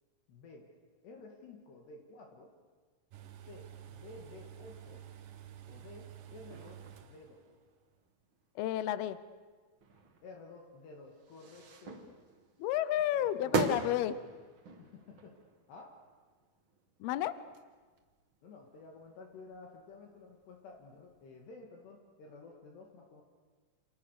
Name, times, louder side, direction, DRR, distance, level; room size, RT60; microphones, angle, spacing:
voice 1, 0.3-0.7 1.0-2.5 3.5-5.0 5.7-7.4 10.2-12.2 13.1-13.9 14.8-15.3 15.7-15.9 18.4-23.2, left 3 dB, 60° left, 1 dB, 4.1 m, -52 dB
sound 1, 3.1-7.6 7.8-7.9, right 10 dB, 65° right, 2.2 m, -51 dB
sound 2, 6.5-8.7 9.1-9.4 9.8-18.5 18.8-21.5, right 4 dB, 90° right, 1.1 m, -41 dB
voice 2, 8.6-9.2 12.6-14.2 17.0-17.4, left 12 dB, 80° left, 14 dB, 2.3 m, -31 dB
29.0 x 28.5 x 6.7 m, 1.5 s
omnidirectional pair, 5.7 m